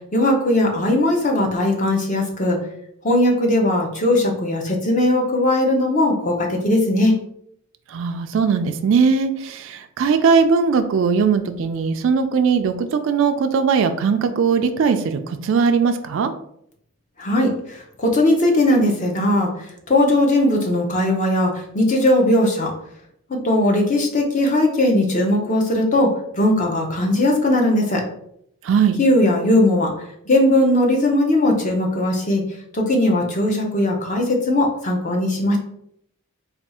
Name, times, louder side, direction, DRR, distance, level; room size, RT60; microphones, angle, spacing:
voice 1, 0.1-2.6 3.0-7.2 17.2-22.7 23.3-28.0 29.0-32.4 32.7-35.6, left 1 dB, 35° left, 1 dB, 0.7 m, -19 dB
voice 2, 7.9-16.3 28.6-29.0, right 5 dB, 60° right, 8 dB, 0.3 m, -19 dB
3.4 x 2.3 x 4.1 m, 0.72 s
head